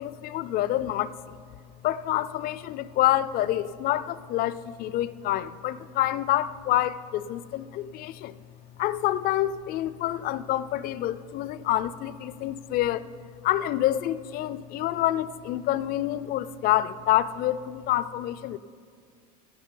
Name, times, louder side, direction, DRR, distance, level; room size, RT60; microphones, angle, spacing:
voice 1, 0.0-1.4 1.8-8.4 8.8-13.1 13.4-18.6, left 13 dB, 45° left, 0.4 m, -27 dB
15.0 x 10.5 x 3.9 m
supercardioid pair, 105°, 20 cm